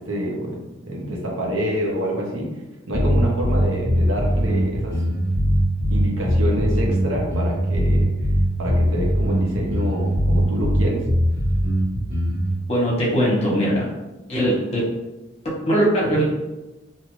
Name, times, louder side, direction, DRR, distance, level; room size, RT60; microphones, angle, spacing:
voice 1, 0.0-2.5 2.9-5.0 5.9-8.1 8.6-11.0, equal, 85° right, -2 dB, 0.8 m, -26 dB
sound 1, 2.9-12.5, equal, 55° right, 1.3 m, -20 dB
voice 2, 12.7-13.8 14.3-14.8 15.4-16.2, equal, 35° left, -5 dB, 0.9 m, -20 dB
2.7 x 2.4 x 3.0 m, 1.1 s
head